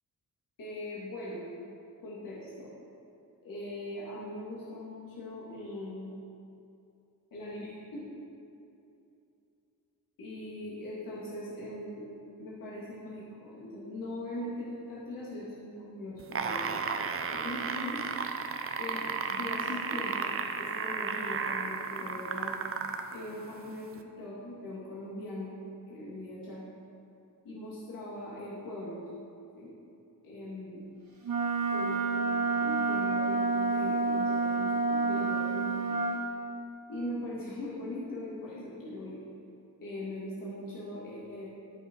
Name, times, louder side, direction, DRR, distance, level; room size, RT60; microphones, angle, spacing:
voice 1, 0.6-1.5 2.0-2.7 3.4-6.1 7.3-8.0 10.2-12.1 12.4-16.6 17.3-18.0 18.8-22.6 23.1-25.6 25.9-26.6 27.4-29.0 29.5-29.7 30.2-30.8 31.4-35.9 36.9-39.2 39.8-41.5, left 1 dB, 65° left, -7 dB, 2.5 m, -40 dB
sound 1, 16.2-23.1 24.0-24.1, right 5 dB, 40° right, 0.7 m, -33 dB
Wind instrument woodwind instrument, 31.2-36.2, right 3 dB, 70° right, 2.2 m, -29 dB
12.0 x 7.7 x 4.6 m, 2.7 s
wide cardioid pair, 140°, 36 cm